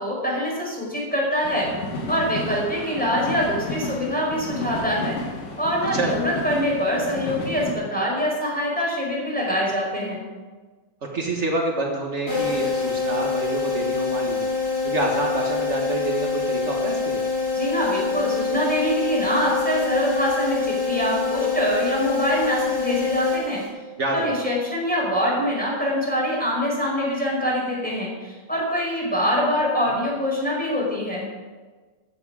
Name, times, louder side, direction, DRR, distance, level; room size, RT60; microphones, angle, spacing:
voice 1, 0.0-1.7 2.1-5.2 5.6-10.2 17.5-23.6 24.1-31.3, equal, 5° left, -4 dB, 4.8 m, -24 dB
sound 1, 1.4-7.7, left 2 dB, 85° left, 3.5 m, -32 dB
voice 2, 11.1-14.5 14.8-17.3 24.0-24.5 29.9-30.0, right 2 dB, 70° right, -1 dB, 0.6 m, -27 dB
sound 2, 12.3-24.0, left 4 dB, 35° left, 6.0 m, -25 dB
14.0 x 11.0 x 5.0 m, 1.3 s
omnidirectional pair, 3.7 m